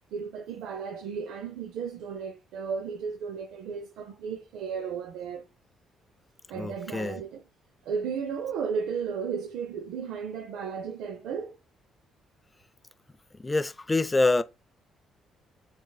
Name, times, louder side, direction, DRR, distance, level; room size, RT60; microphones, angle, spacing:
voice 1, 0.1-5.4 6.5-7.4 7.8-11.6, right 6 dB, 85° right, 0.4 m, -34 dB
voice 2, 6.5-7.2 13.4-14.4, left 2 dB, 20° left, 0.3 m, -26 dB
6.3 x 3.6 x 2.2 m
cardioid pair, 100°, 0 cm